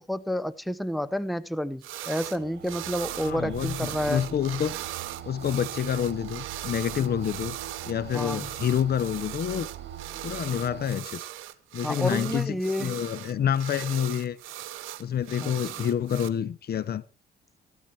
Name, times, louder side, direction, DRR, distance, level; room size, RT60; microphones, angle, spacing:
voice 1, 0.0-4.2 8.1-8.5 11.8-13.0 15.4-15.5, equal, ahead, 0.8 m, -30 dB
sound 1, 1.8-2.4 2.6-16.3, right 14 dB, 90° right, 1.1 m, -39 dB
sound 2, 2.2-11.0, right 10 dB, 65° right, 2.3 m, -42 dB
voice 2, 3.2-4.8 5.2-7.6 7.9-9.7 10.2-11.2 11.7-14.4 15.0-17.0, left 9 dB, 55° left, 0.8 m, -28 dB
15.0 x 12.0 x 4.5 m
cardioid pair, 90°, 20 cm